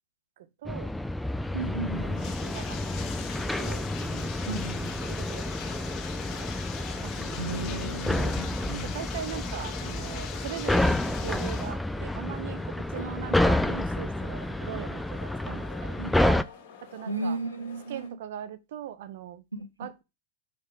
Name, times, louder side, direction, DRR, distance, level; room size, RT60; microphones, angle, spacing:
voice 1, 0.4-0.9 1.8-3.1 3.6-6.5 7.0-7.4 7.7-7.9 8.7-16.5 16.8-17.4 17.9-19.4 19.8-20.0, right 10 dB, 55° right, 0.7 m, -41 dB
sound 1, 0.6-16.4, left 1 dB, 5° left, 0.4 m, -29 dB
voice 2, 1.5-2.2 4.5-4.9 7.3-8.9 12.9-13.5 16.0-16.1 17.0-18.2 19.5-19.7, right 2 dB, 85° right, 1.3 m, -35 dB
sound 2, 1.6-18.1, left 7 dB, 55° left, 1.8 m, -50 dB
Bathtub (filling or washing), 2.0-11.8, left 8 dB, 35° left, 1.1 m, -41 dB
6.1 x 4.3 x 4.7 m
figure-of-eight pair, 90°, 0 cm